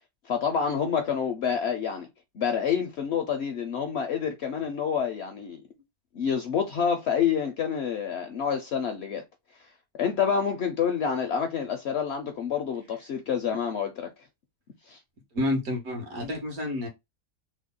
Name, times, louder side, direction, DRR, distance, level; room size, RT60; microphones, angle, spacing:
voice 1, 0.2-2.1 2.3-5.6 6.1-9.2 10.0-14.1 14.9-15.0, left 7 dB, 65° left, 0.7 m, -28 dB
voice 2, 15.3-16.9, left 1 dB, 75° right, 1.6 m, -29 dB
3.5 x 2.1 x 3.6 m
omnidirectional pair, 1.6 m